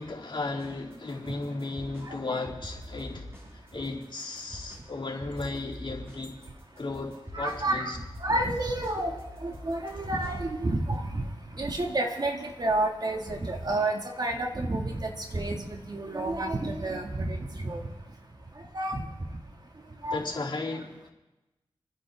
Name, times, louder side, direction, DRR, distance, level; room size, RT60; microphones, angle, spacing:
voice 1, 0.0-3.3 3.5-6.3 6.8-8.0 20.1-21.0, left 3 dB, 55° left, -2 dB, 3.3 m, -35 dB
sound 1, 0.6-2.1 2.5-4.9 5.2-11.0, left 1 dB, 25° right, 6.0 m, -44 dB
voice 2, 2.0-2.4 7.3-7.9 8.2-11.2 11.6-17.8 18.7-19.0 20.0-20.2, right 2 dB, 45° right, 2 dB, 2.2 m, -30 dB
28.5 x 10.0 x 3.7 m, 1.0 s
cardioid pair, 50°, 10 cm